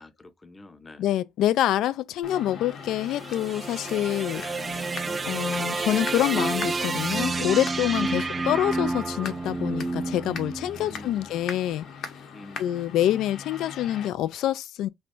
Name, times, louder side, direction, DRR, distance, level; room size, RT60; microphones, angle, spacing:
voice 1, 0.0-1.1 1.6-1.7 4.3-5.7 8.0-8.3 10.7-11.5 12.3-13.3, left 3 dB, 25° left, 0.7 m, -47 dB
voice 2, 1.0-4.4 5.2-11.9 12.6-14.9, left 12 dB, 85° left, 0.3 m, -26 dB
sound 1, 2.2-14.1, left 6 dB, 70° left, 0.9 m, -41 dB
sound 2, 2.8-11.2, right 3 dB, 30° right, 0.4 m, -30 dB
3.2 x 2.4 x 4.4 m
cardioid pair, 90°, 0 cm